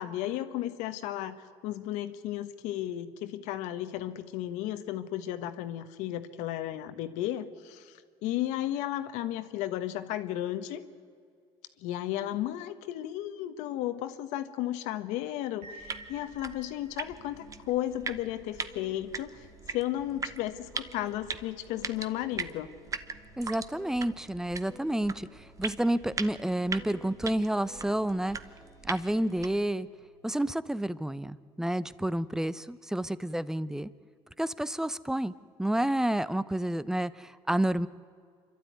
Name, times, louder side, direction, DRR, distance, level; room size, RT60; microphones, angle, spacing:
voice 1, 0.0-10.8 11.8-22.7, left 13 dB, 80° left, 11 dB, 1.3 m, -34 dB
sound 1, 15.6-27.3, right 1 dB, 60° right, 2.5 m, -57 dB
sound 2, 15.8-29.7, right 5 dB, 30° right, 1.1 m, -41 dB
sound 3, 17.2-32.3, left 1 dB, 25° left, 2.6 m, -56 dB
voice 2, 23.4-28.4 28.8-29.9 30.2-33.9 34.4-35.3 35.6-37.9, right 1 dB, 5° right, 16 dB, 0.8 m, -30 dB
27.0 x 12.5 x 9.4 m, 2.1 s
supercardioid pair, 90°, 12 cm